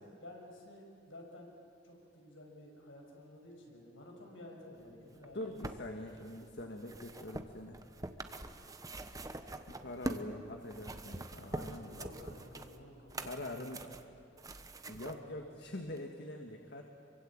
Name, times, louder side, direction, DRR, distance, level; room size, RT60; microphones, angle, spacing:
voice 1, 0.2-1.5 1.8-5.4 8.0-8.5 11.4-13.5 15.0-15.3, left 1 dB, 85° left, 0 dB, 6.3 m, -53 dB
sound 1, 5.2-10.3 10.6-15.2 16.0-16.1, right 2 dB, 20° right, 1.1 m, -44 dB
voice 2, 5.3-7.8 9.7-12.0 13.2-13.9 14.9-16.8, left 1 dB, 60° left, 3 dB, 1.9 m, -44 dB
26.0 x 24.0 x 8.8 m, 2.6 s
head